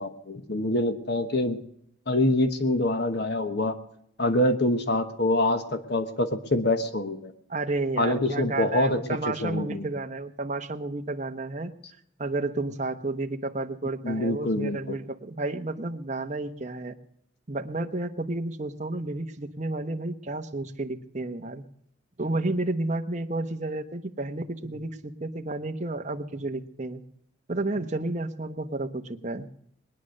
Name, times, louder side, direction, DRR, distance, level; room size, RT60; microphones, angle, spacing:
voice 1, 0.0-1.6 2.1-3.8 4.2-7.3 8.0-9.0 9.3-9.9 14.0-15.0, left 1 dB, 55° left, 8 dB, 1.2 m, -25 dB
voice 2, 7.5-11.7 12.2-17.0 17.5-21.6 22.2-27.0 27.5-29.5, right 2 dB, 35° right, 6 dB, 1.0 m, -31 dB
21.5 x 9.9 x 6.4 m, 0.71 s
head